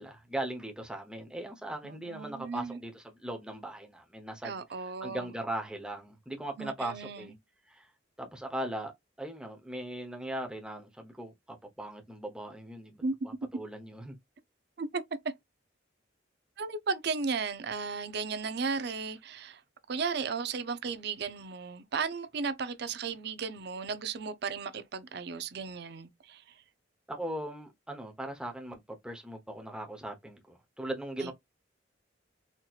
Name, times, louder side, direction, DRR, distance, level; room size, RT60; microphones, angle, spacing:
voice 1, 0.0-4.6 5.0-7.3 7.7-7.9 8.2-8.9 9.2-14.2 27.1-31.3, right 1 dB, 5° right, 0.8 m, -39 dB
voice 2, 1.8-2.8 4.4-5.3 6.6-7.3 13.0-13.1 14.8-15.0 16.6-19.6 19.9-26.4 31.2-31.3, right 5 dB, 60° right, 0.5 m, -35 dB
4.3 x 2.9 x 2.4 m
head